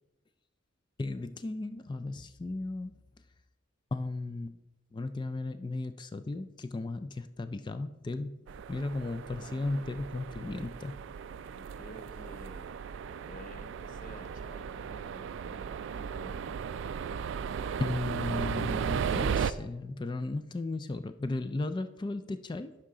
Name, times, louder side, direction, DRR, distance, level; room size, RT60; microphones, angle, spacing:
voice 1, 1.0-2.9 3.9-4.6 4.9-10.9 17.8-22.7, left 2 dB, 20° left, 11 dB, 0.3 m, -35 dB
sound 1, 8.5-19.5, right 7 dB, 60° right, 0.3 m, -36 dB
voice 2, 9.4-9.9 11.4-12.7 13.3-15.6 15.9-16.6, equal, 40° left, 5 dB, 0.9 m, -51 dB
11.5 x 4.9 x 3.7 m, 0.99 s
head